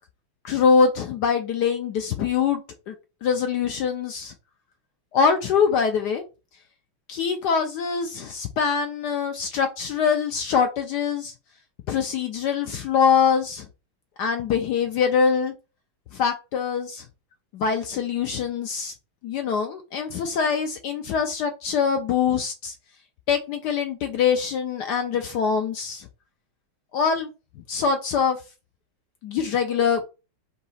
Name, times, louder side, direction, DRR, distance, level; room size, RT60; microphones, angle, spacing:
voice 1, 0.4-2.6 2.9-3.0 3.2-4.3 5.1-6.2 7.1-11.3 11.9-13.7 14.2-15.5 16.1-17.0 17.5-18.9 19.2-22.7 23.3-26.1 26.9-27.3 27.7-28.4 29.2-30.0, left 6 dB, 75° left, 5 dB, 0.9 m, -23 dB
3.9 x 2.7 x 4.0 m, 0.29 s
omnidirectional pair, 2.3 m